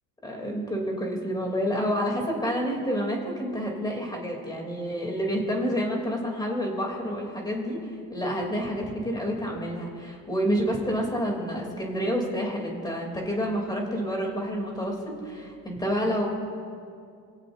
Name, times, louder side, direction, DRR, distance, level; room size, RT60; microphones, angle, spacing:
voice 1, 0.2-16.3, equal, 10° left, -1 dB, 3.0 m, -29 dB
27.0 x 17.0 x 2.7 m, 2.3 s
cardioid pair, 165°, 35 cm